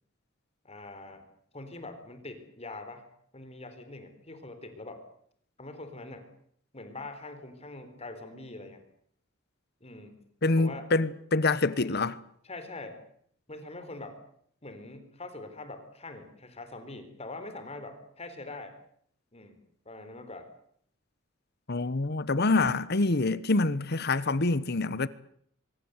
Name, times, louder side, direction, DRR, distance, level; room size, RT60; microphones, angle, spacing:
voice 1, 0.6-1.2 1.5-3.0 3.3-5.0 5.6-6.3 6.7-8.8 9.8-10.2 10.6-10.9 11.8-12.0 12.4-13.0 13.5-14.2 14.6-18.8 19.3-19.6 19.9-20.5, left 2 dB, 30° left, 4.0 m, -43 dB
voice 2, 10.4-12.1 21.7-25.1, left 3 dB, 55° left, 1.0 m, -26 dB
24.5 x 21.5 x 8.1 m
head